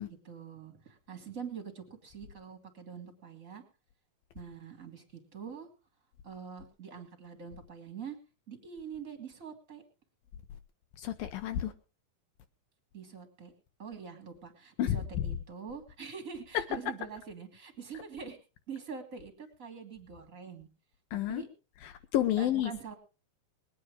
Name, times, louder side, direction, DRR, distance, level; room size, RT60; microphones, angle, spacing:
voice 1, 0.2-3.6 4.3-5.7 6.2-8.2 8.5-9.8 12.9-13.5 13.8-18.4 18.7-20.7 21.1-21.5 22.4-22.9, right 6 dB, 25° right, 2.7 m, -44 dB
voice 2, 11.0-11.7 14.8-15.0 21.1-21.4 21.8-22.7, left 12 dB, 75° left, 2.5 m, -30 dB
21.0 x 9.6 x 4.9 m
omnidirectional pair, 4.3 m